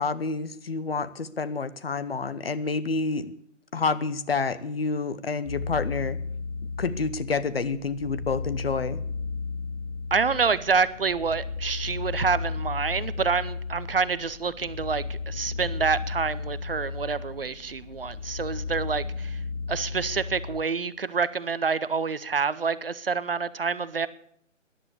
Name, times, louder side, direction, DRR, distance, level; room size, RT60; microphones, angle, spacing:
voice 1, 0.0-3.3 3.7-6.2 6.8-9.0, left 4 dB, 50° left, 14 dB, 1.1 m, -28 dB
sound 1, 5.5-20.6, left 4 dB, 5° left, 2.7 m, -34 dB
voice 2, 10.1-19.4 19.7-24.1, right 5 dB, 50° right, 16 dB, 0.8 m, -27 dB
13.5 x 11.0 x 8.5 m, 0.67 s
figure-of-eight pair, 145°, 38 cm